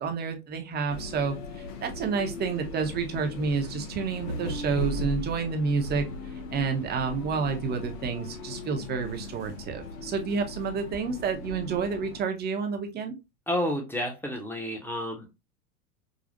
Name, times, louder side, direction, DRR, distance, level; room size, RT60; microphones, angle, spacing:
voice 1, 0.0-13.2, right 5 dB, 20° right, 5 dB, 0.8 m, -30 dB
sound 1, 0.9-12.2, left 1 dB, 85° left, 1.1 m, -38 dB
voice 2, 13.5-15.3, left 1 dB, 5° left, 3 dB, 0.9 m, -30 dB
5.0 x 2.4 x 2.5 m, 0.23 s
hypercardioid pair, 120°, 44 cm